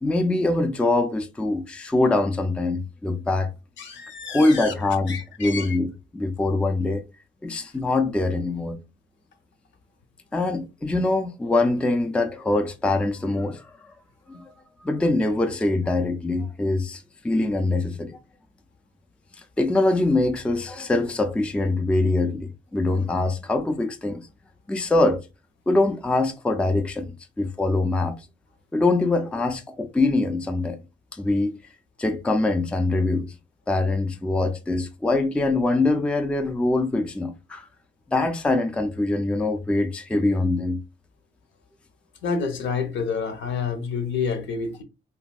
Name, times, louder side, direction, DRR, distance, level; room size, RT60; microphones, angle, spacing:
voice 1, 0.0-3.5 4.3-7.0 7.4-8.8 10.3-13.6 14.3-14.5 14.8-18.2 19.6-24.3 24.7-25.2 25.7-28.2 28.7-30.8 31.1-31.5 32.0-33.3 33.7-37.6 38.1-40.8, left 2 dB, 5° left, 0.3 m, -23 dB
voice 2, 3.8-4.7 5.1-5.8 42.2-44.8, left 5 dB, 70° left, 0.8 m, -29 dB
3.1 x 2.6 x 2.2 m
cardioid pair, 90°, 20 cm